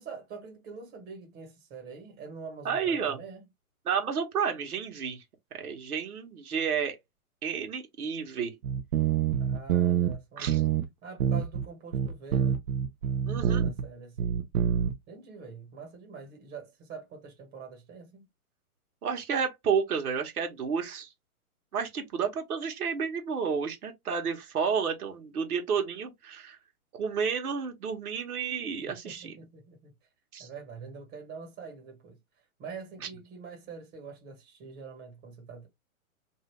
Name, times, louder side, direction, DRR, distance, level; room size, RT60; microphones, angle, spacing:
voice 1, 0.0-3.4 9.4-10.8 11.0-12.6 13.4-14.4 15.1-18.3 28.8-29.9 30.4-32.2 32.6-35.7, right 5 dB, 25° right, 1.4 m, -45 dB
voice 2, 2.6-3.2 3.9-5.2 5.5-7.0 7.4-8.5 10.4-10.6 13.3-13.7 19.0-21.1 21.7-26.6 26.9-29.3 30.3-30.5, right 6 dB, 90° right, 1.3 m, -31 dB
sound 1, 8.6-10.2 10.5-10.9 11.2-11.7 11.9-13.9 14.2-14.9, right 8 dB, 70° right, 0.7 m, -26 dB
2.7 x 2.6 x 3.2 m
hypercardioid pair, 140°, 43 cm